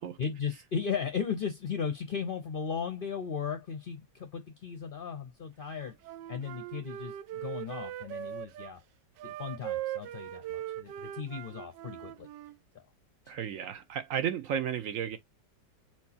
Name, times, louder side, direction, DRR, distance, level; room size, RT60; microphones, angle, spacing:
voice 1, 0.2-5.9 6.3-8.8 9.2-12.3 12.7-12.8 13.3-13.4, left 6 dB, 50° left, 0.6 m, -36 dB
Wind instrument woodwind instrument, 5.8-8.7 9.2-12.6, right 12 dB, 85° right, 1.3 m, -40 dB
voice 2, 13.3-15.2, right 9 dB, 65° right, 0.8 m, -33 dB
4.5 x 4.3 x 2.7 m
omnidirectional pair, 1.9 m